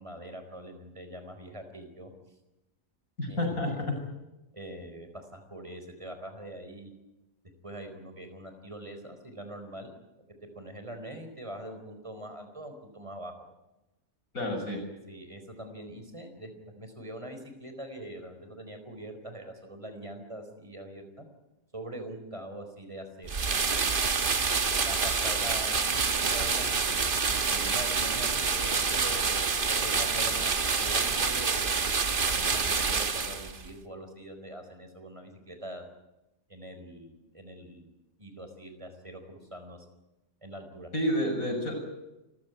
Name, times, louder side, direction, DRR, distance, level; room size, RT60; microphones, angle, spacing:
voice 1, 0.0-2.1 3.3-3.7 4.5-6.9 7.6-9.9 10.5-13.3 14.7-21.3 21.7-23.3 24.4-26.8 27.5-31.7 32.4-35.8 36.5-37.9 38.2-39.8 40.4-40.9, right 1 dB, 20° right, 7 dB, 4.4 m, -43 dB
voice 2, 3.2-3.7 14.3-14.8 40.9-41.7, equal, 80° left, 2 dB, 6.9 m, -29 dB
sound 1, 23.3-33.7, right 5 dB, 40° right, 1.4 m, -27 dB
28.5 x 15.0 x 9.5 m, 0.99 s
omnidirectional pair, 1.4 m